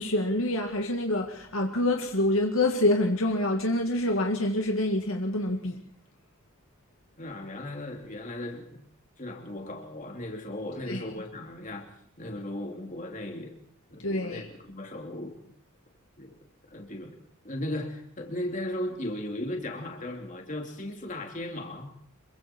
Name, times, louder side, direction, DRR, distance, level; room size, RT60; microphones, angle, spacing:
voice 1, 0.0-5.8 10.9-11.0 14.0-14.5, left 1 dB, 80° left, 2.2 m, -26 dB
voice 2, 7.2-8.8 9.2-11.9 12.2-13.6 13.9-15.4 16.2-16.3 16.7-17.2 17.4-21.9, left 1 dB, 40° left, 2.9 m, -36 dB
27.0 x 23.5 x 4.5 m
head